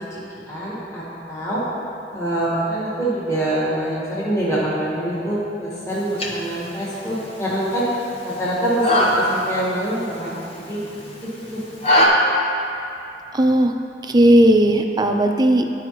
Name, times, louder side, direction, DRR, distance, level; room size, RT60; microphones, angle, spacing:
voice 1, 0.1-1.6 2.1-7.9 8.2-10.8 11.2-11.6, right 1 dB, 20° left, -9 dB, 1.8 m, -25 dB
sound 1, 5.9-12.1, left 1 dB, 35° left, 0.9 m, -24 dB
voice 2, 13.3-13.7 14.0-15.8, right 1 dB, 25° right, 5 dB, 0.4 m, -16 dB
12.0 x 4.9 x 3.1 m, 2.7 s
head